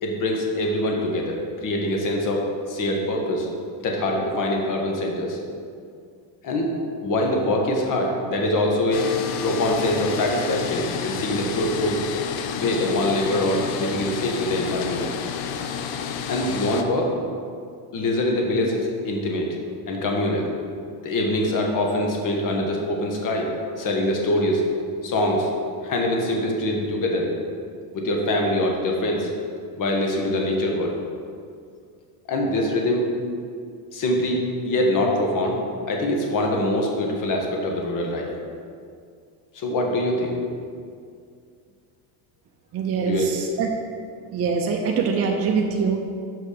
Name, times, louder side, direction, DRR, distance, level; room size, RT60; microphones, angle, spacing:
voice 1, 0.0-3.5 3.8-5.4 6.4-6.7 7.0-9.1 9.4-12.0 12.6-15.1 16.3-17.1 17.9-19.5 19.9-20.5 21.0-23.5 23.8-24.6 25.0-25.5 25.8-27.3 27.9-29.3 29.7-30.9 32.3-33.1 33.9-34.4 34.6-35.6 35.9-38.3 39.5-40.4 43.0-43.3, left 1 dB, 45° left, 1 dB, 1.3 m, -24 dB
sound 1, 8.9-16.8, left 7 dB, 75° left, 0.7 m, -30 dB
voice 2, 42.7-43.7 44.3-46.1, right 5 dB, 35° right, 1 dB, 0.6 m, -24 dB
5.7 x 5.5 x 5.1 m, 2.2 s
cardioid pair, 125°, 44 cm